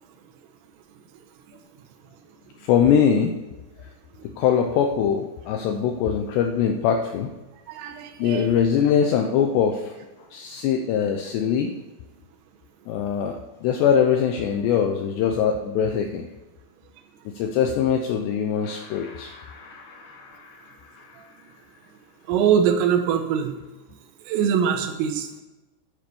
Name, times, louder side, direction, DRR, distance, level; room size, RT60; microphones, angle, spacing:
voice 1, 2.6-3.4 4.4-7.3 8.2-9.9 10.3-11.7 12.9-16.3 17.3-21.4, left 8 dB, 85° left, 4 dB, 2.4 m, -23 dB
voice 2, 7.7-8.5 21.2-21.3 22.3-23.6 24.3-25.4, right 8 dB, 90° right, 5 dB, 3.9 m, -23 dB
10.0 x 8.2 x 6.9 m, 1.1 s
omnidirectional pair, 5.8 m